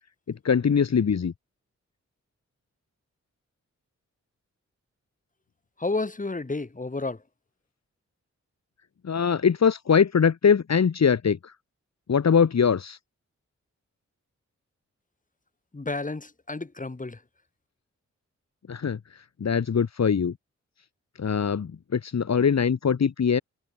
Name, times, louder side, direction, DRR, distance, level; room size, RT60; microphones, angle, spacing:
voice 1, 0.4-1.3 9.0-11.5 12.1-13.0 18.7-19.0 19.4-20.3 21.2-23.4, left 6 dB, 65° left, 2.6 m, -22 dB
voice 2, 5.8-7.2 15.7-17.2, left 3 dB, 25° left, 7.5 m, -31 dB
wide cardioid pair, 115°, 29 cm